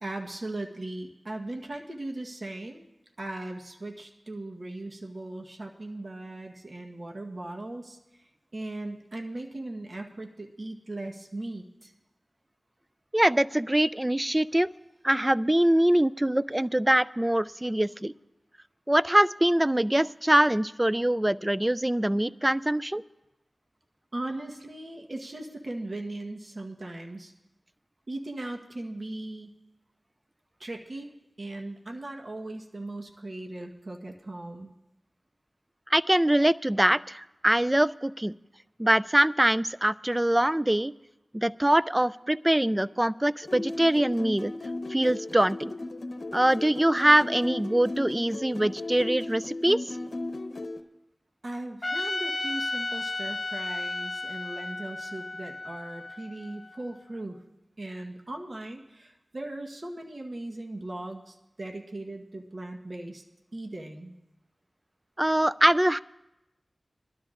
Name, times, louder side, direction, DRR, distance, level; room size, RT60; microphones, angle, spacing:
voice 1, 0.0-2.9 3.2-8.0 8.5-11.9 24.1-27.3 28.1-29.5 30.6-31.1 31.4-34.7 51.4-57.4 57.8-63.2 63.5-64.1, right 2 dB, 55° right, 2 dB, 1.2 m, -38 dB
voice 2, 13.1-14.7 15.0-18.1 18.9-23.0 35.9-38.3 38.8-40.9 41.3-44.5 44.9-45.7 46.3-50.0 65.2-66.0, right 1 dB, 20° right, 17 dB, 0.3 m, -23 dB
sound 1, 43.4-50.8, left 2 dB, 75° left, 0.8 m, -36 dB
Trumpet, 51.8-57.0, left 2 dB, 40° left, 1.3 m, -34 dB
22.0 x 12.5 x 2.5 m, 0.95 s
cardioid pair, 40°, 0 cm